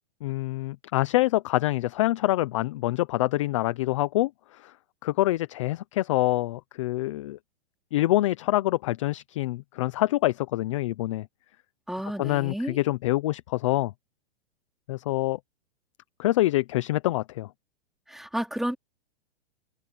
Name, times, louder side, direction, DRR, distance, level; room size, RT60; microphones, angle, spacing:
voice 1, 0.2-4.7 5.0-7.4 7.9-11.3 12.2-13.9 14.9-15.4 16.2-17.5, left 17 dB, 30° left, 0.4 m, -26 dB
voice 2, 11.9-12.8 18.1-18.8, equal, ahead, 3.1 m, -31 dB
hypercardioid pair, 160°, 33 cm